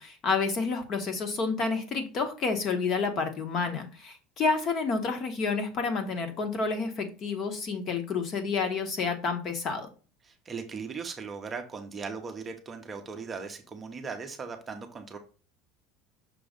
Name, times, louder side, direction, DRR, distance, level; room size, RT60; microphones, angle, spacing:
voice 1, 0.0-9.9, left 4 dB, 30° left, 7 dB, 1.1 m, -29 dB
voice 2, 10.2-15.2, right 5 dB, 15° right, 5 dB, 0.7 m, -38 dB
6.1 x 3.0 x 5.1 m, 0.36 s
cardioid pair, 170°, 0 cm